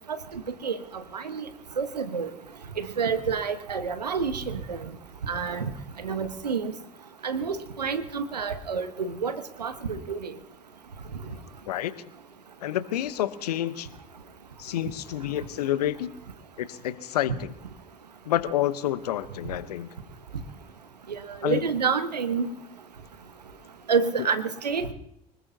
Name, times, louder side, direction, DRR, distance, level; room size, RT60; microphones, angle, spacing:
voice 1, 0.3-0.8 1.1-1.5 1.8-2.3 2.8-4.8 5.3-5.7 6.0-6.7 7.2-10.3 21.1-22.5 23.9-24.9, right 5 dB, 85° right, 10 dB, 1.2 m, -28 dB
voice 2, 12.6-13.9 14.6-16.1 16.6-17.5 18.3-19.9 21.4-21.6, left 12 dB, 75° left, 15 dB, 1.0 m, -28 dB
24.5 x 20.5 x 2.8 m, 0.72 s
figure-of-eight pair, 60°, 20 cm